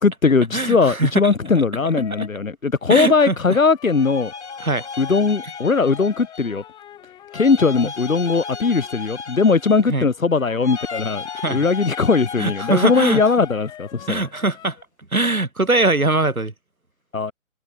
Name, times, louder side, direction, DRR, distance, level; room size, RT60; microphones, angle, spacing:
voice 1, 0.0-4.3 5.0-6.6 7.3-11.2 11.5-14.2 17.1-17.3, left 4 dB, 70° left, 1.5 m, -19 dB
voice 2, 0.5-1.1 2.2-2.3 2.9-3.6 4.6-4.9 7.8-7.9 9.9-10.1 11.4-11.7 12.4-13.2 14.1-14.8 15.1-16.5, right 2 dB, 85° right, 2.5 m, -21 dB
sound 1, 1.8-2.4 3.3-9.0 10.1-14.8, left 11 dB, 10° left, 5.4 m, -41 dB
sound 2, 3.8-6.7 7.3-10.1 10.6-13.6, left 5 dB, 55° left, 6.6 m, -35 dB
figure-of-eight pair, 140°, 41 cm